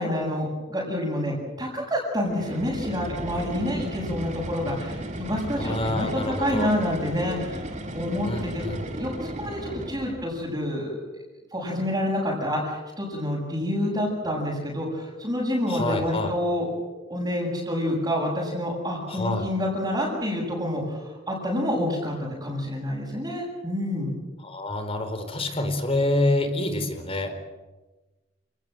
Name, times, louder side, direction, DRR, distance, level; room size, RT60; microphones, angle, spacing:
voice 1, 0.0-7.6 7.9-8.6 9.0-11.0 11.5-16.7 17.1-24.1, left 1 dB, 20° right, -7 dB, 7.2 m, -28 dB
sound 1, 2.3-10.3, right 1 dB, 40° right, 3.2 m, -35 dB
voice 2, 5.6-6.7 8.2-8.8 15.7-16.3 19.1-19.5 24.4-27.3, left 1 dB, 30° left, 7 dB, 4.4 m, -27 dB
29.5 x 20.0 x 7.8 m, 1.2 s
head